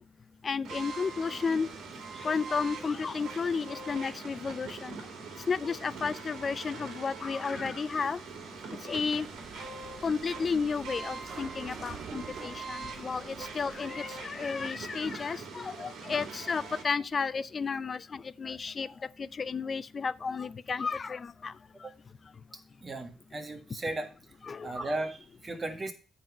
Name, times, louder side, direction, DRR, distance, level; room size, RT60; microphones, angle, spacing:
voice 1, 0.4-1.7 2.2-5.0 5.5-8.2 8.9-9.3 10.0-18.9 19.4-21.5 24.4-24.7, left 5 dB, 40° left, 0.4 m, -32 dB
sound 1, 0.6-16.8, right 4 dB, 75° right, 2.0 m, -43 dB
sound 2, 9.2-14.4, right 5 dB, 60° right, 2.2 m, -48 dB
voice 2, 22.8-24.1 24.6-25.9, right 2 dB, 30° right, 1.6 m, -36 dB
8.9 x 4.1 x 6.1 m
cardioid pair, 90°, 0 cm